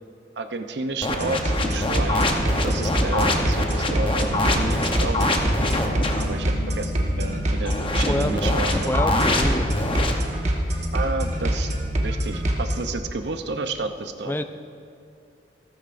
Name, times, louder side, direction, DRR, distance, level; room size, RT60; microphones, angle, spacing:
voice 1, 0.4-5.4 6.1-6.9 7.2-8.9 10.9-11.7 12.0-14.3, right 3 dB, 75° right, 8 dB, 0.7 m, -31 dB
sound 1, 1.0-6.3 7.6-10.1, left 1 dB, 30° left, 0.9 m, -25 dB
sound 2, 1.1-12.8, right 1 dB, 40° right, 1.2 m, -25 dB
sound 3, 2.3-9.6, left 4 dB, 80° left, 1.1 m, -41 dB
voice 2, 5.6-5.9 8.0-8.3 8.9-9.9 14.2-14.4, left 1 dB, 10° left, 9 dB, 0.4 m, -28 dB
15.0 x 14.0 x 2.6 m, 2.5 s
head